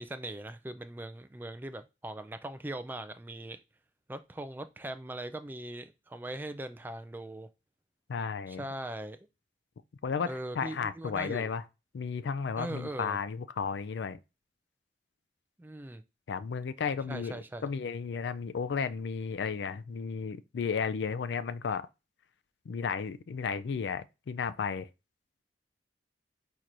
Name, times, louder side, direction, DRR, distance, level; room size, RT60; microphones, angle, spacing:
voice 1, 0.0-3.6 4.1-7.5 8.5-9.2 10.2-11.5 12.6-13.2 15.6-16.0 17.1-17.7, right 1 dB, 10° right, 0.3 m, -40 dB
voice 2, 8.1-8.6 10.0-11.6 11.9-14.2 16.3-17.4 17.6-21.9 22.7-24.9, left 6 dB, 75° left, 0.4 m, -33 dB
4.6 x 4.3 x 2.5 m
head